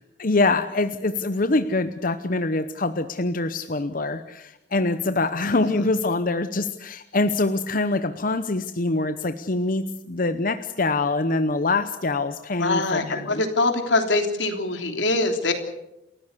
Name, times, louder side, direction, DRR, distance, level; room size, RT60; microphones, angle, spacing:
voice 1, 0.2-13.4, left 2 dB, 50° left, 10 dB, 0.9 m, -24 dB
voice 2, 12.6-15.5, left 2 dB, 85° left, 6 dB, 3.3 m, -23 dB
29.0 x 14.0 x 8.3 m, 0.89 s
head